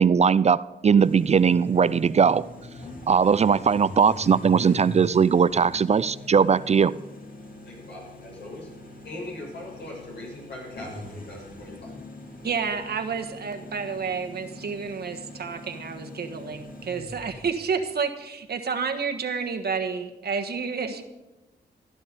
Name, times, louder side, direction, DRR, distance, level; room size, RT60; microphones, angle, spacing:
voice 1, 0.0-2.4 3.1-6.9, right 6 dB, 40° right, 18 dB, 0.4 m, -19 dB
sound 1, 1.0-17.8, left 1 dB, 50° left, 2.4 m, -42 dB
voice 2, 7.6-8.7 9.0-11.9, left 1 dB, 75° left, -3 dB, 6.9 m, -40 dB
voice 3, 12.4-21.0, right 5 dB, 65° right, 6 dB, 1.4 m, -30 dB
16.0 x 12.0 x 5.3 m, 1.0 s
cardioid pair, 70°, 18 cm